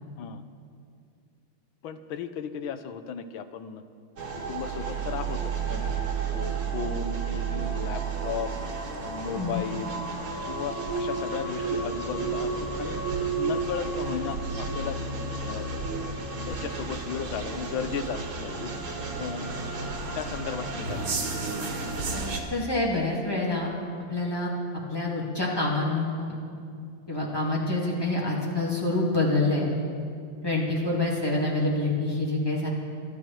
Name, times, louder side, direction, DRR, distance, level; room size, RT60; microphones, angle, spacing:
voice 1, 1.8-3.8 4.2-5.9 6.3-8.5 9.0-10.0 10.5-13.0 13.4-15.0 15.4-15.7 16.5-18.7 19.2-19.5 20.1-21.2, left 7 dB, 75° left, 10 dB, 1.6 m, -35 dB
sound 1, 4.2-22.4, right 4 dB, 85° right, 2.7 m, -31 dB
voice 2, 9.3-9.7 22.5-23.7 24.1-24.5 24.9-26.4 27.1-29.7 30.4-32.7, left 2 dB, 10° left, -5 dB, 2.7 m, -26 dB
25.0 x 12.0 x 4.5 m, 2.3 s
omnidirectional pair, 2.3 m